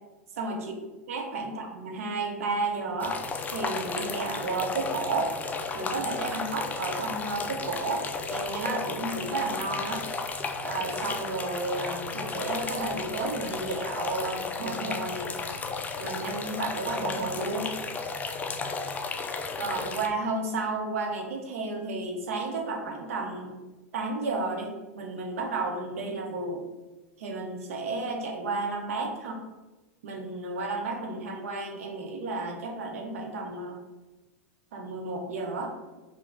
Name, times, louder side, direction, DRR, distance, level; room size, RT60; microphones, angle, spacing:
voice 1, 1.1-3.2 3.5-5.3 5.7-10.1 10.6-15.3 16.0-17.7 19.6-23.5 23.9-26.6 27.2-29.4 30.0-33.8 34.7-36.0, right 3 dB, 70° right, 2 dB, 0.8 m, -32 dB
sound 1, 3.0-20.1, left 4 dB, 20° left, 0.4 m, -34 dB
4.6 x 2.2 x 3.8 m, 1.2 s
hypercardioid pair, 95°, 8 cm